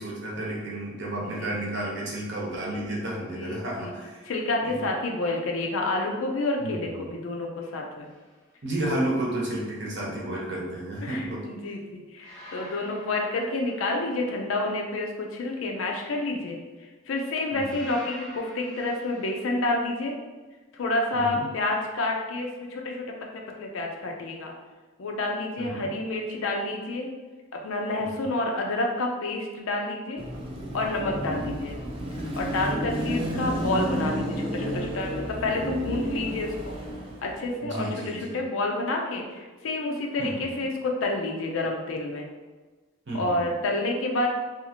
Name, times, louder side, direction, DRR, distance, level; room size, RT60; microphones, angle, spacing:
voice 1, 0.0-4.3 4.6-4.9 6.6-6.7 8.6-11.5 17.5-17.8 21.1-21.4 25.6-25.9 28.0-28.3 31.1-31.5 32.8-33.3 37.6-38.4 40.2-40.5 43.1-43.4, right 1 dB, 55° right, -4 dB, 0.8 m, -32 dB
voice 2, 1.2-1.6 3.2-3.9 4.2-8.1 11.0-16.6 17.1-20.1 20.7-23.1 23.3-24.5 25.0-27.1 27.5-30.2 30.7-31.8 32.4-36.7 37.2-42.3 43.1-44.3, left 2 dB, 85° left, 1 dB, 0.4 m, -29 dB
sound 1, 8.0-8.4 12.2-14.4 17.6-19.7, equal, 5° left, 0.7 m, -47 dB
Car passing by / Traffic noise roadway noise / Engine, 30.2-37.5, equal, 25° right, 0.3 m, -31 dB
2.7 x 2.4 x 2.8 m, 1.3 s
head